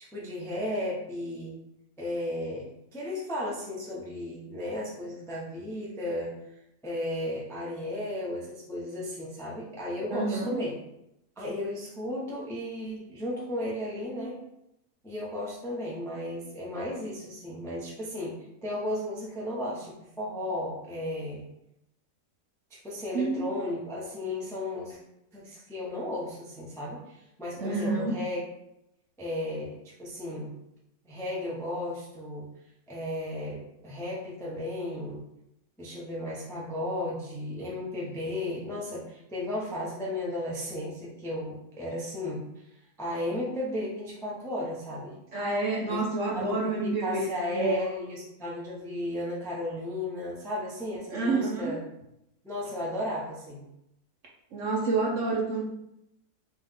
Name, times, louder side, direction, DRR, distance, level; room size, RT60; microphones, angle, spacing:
voice 1, 0.1-1.6 2.0-6.3 6.8-10.8 11.4-14.4 15.0-21.5 22.7-25.0 25.3-28.4 29.2-29.7 30.0-30.5 31.0-32.5 32.9-35.2 35.8-42.4 43.0-45.2 45.9-46.0 46.3-51.8 52.4-53.6, left 1 dB, 5° left, -5 dB, 0.5 m, -34 dB
voice 2, 10.1-10.6 23.1-23.5 27.6-28.1 45.3-47.8 51.1-51.8 54.5-55.6, right 3 dB, 60° right, -2 dB, 0.9 m, -28 dB
3.8 x 3.1 x 3.5 m, 0.83 s
omnidirectional pair, 1.7 m